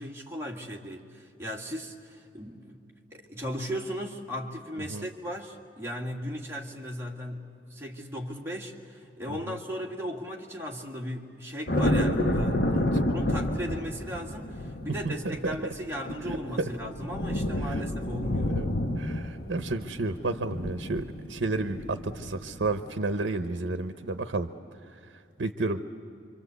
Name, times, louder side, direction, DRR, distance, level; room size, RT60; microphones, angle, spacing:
voice 1, 0.0-2.8 3.1-18.6, equal, 15° right, -1 dB, 1.9 m, -37 dB
voice 2, 9.3-9.6 12.7-12.9 15.0-15.6 16.6-16.7 17.6-17.8 18.6-18.7 19.0-24.5 25.4-25.8, right 2 dB, 75° right, 9 dB, 0.8 m, -31 dB
sound 1, 11.7-23.0, left 1 dB, 55° left, 1.3 m, -30 dB
26.5 x 25.0 x 8.1 m, 2.6 s
head